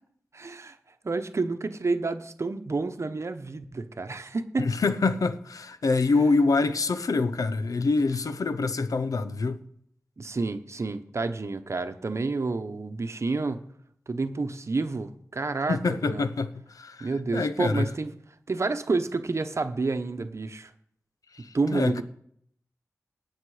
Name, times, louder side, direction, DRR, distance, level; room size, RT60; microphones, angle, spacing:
voice 1, 0.3-0.8 1.0-4.7 10.2-13.6 14.1-15.8 16.0-16.3 17.0-18.1 18.5-20.7 21.5-22.0, right 3 dB, 50° right, 1.0 m, -29 dB
voice 2, 4.6-9.6 15.7-17.9 21.3-22.0, left 3 dB, 75° left, 0.8 m, -26 dB
18.0 x 6.5 x 5.0 m
cardioid pair, 55°, 6 cm